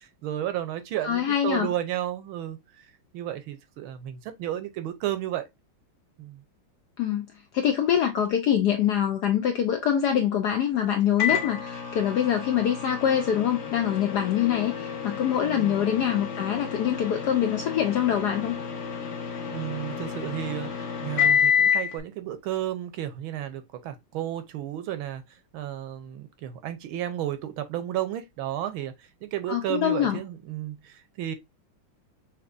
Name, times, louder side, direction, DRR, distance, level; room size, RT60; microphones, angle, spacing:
voice 1, 0.0-2.9 3.1-5.5 6.2-6.4 15.4-15.9 19.5-25.2 25.5-31.3, right 12 dB, 75° right, 1.5 m, -33 dB
voice 2, 1.0-1.7 7.0-7.3 7.5-18.6 29.5-30.2, left 9 dB, 75° left, 0.9 m, -24 dB
Microwave oven, 11.2-22.0, left 7 dB, 45° left, 1.1 m, -29 dB
6.0 x 2.9 x 2.5 m
omnidirectional pair, 2.3 m